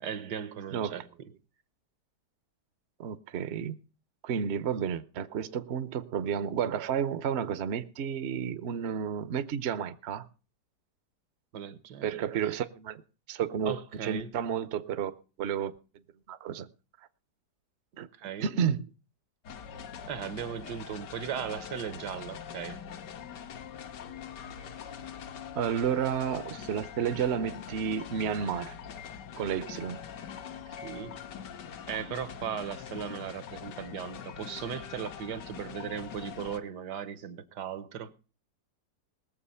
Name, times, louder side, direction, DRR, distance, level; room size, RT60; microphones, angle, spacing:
voice 1, 0.0-1.0 11.5-12.1 13.6-14.3 18.2-18.5 20.1-22.8 30.8-31.2 31.9-38.1, right 8 dB, 75° right, 1.6 m, -37 dB
voice 2, 0.7-1.0 3.0-3.7 4.2-10.3 12.0-13.0 13.3-15.1 15.4-15.7 16.3-16.7 18.0-18.1 18.4-18.9 25.5-28.8 29.4-30.0, right 8 dB, 55° right, 0.8 m, -31 dB
sound 1, 19.4-36.6, left 8 dB, 85° left, 1.6 m, -43 dB
20.0 x 7.3 x 5.6 m
omnidirectional pair, 1.8 m